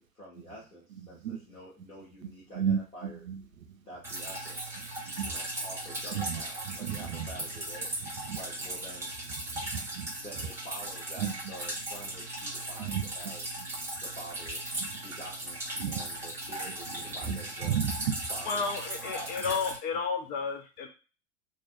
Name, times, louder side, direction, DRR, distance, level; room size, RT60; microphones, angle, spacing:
voice 1, 0.1-3.2 3.8-4.8 5.2-7.9 8.3-9.1 10.2-13.4 14.0-14.7 15.0-15.6 15.9-17.7 18.3-18.7 19.1-19.3, equal, 85° left, -7 dB, 1.0 m, -47 dB
voice 2, 0.9-1.4 2.2-3.8 5.1-5.4 6.1-7.3 8.0-8.4 9.5-10.1 11.2-11.3 12.8-13.7 14.8-15.0 15.8-16.1 16.7-16.8 17.2-18.3, right 8 dB, 75° right, 6 dB, 0.5 m, -34 dB
Drip, 4.0-19.8, right 1 dB, 5° right, 0.7 m, -38 dB
voice 3, 18.5-20.9, left 5 dB, 25° left, 4 dB, 0.4 m, -32 dB
2.5 x 2.1 x 2.4 m, 0.34 s
figure-of-eight pair, 80°, 41 cm